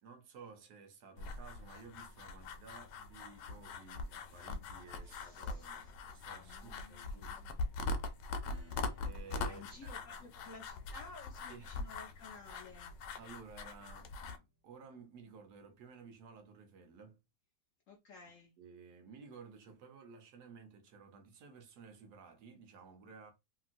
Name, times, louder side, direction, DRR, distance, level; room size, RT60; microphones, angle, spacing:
voice 1, 0.0-7.4 9.0-9.9 11.5-11.8 13.2-17.2 18.6-23.3, right 5 dB, 70° right, 1.3 m, -55 dB
sound 1, 1.2-14.4, left 3 dB, 85° left, 1.2 m, -42 dB
voice 2, 5.0-5.9 6.4-7.7 9.4-12.9 17.9-18.5, left 3 dB, 65° left, 0.8 m, -55 dB
Acoustic guitar / Strum, 8.4-15.6, right 3 dB, 15° left, 1.1 m, -65 dB
2.9 x 2.8 x 2.5 m
omnidirectional pair, 1.9 m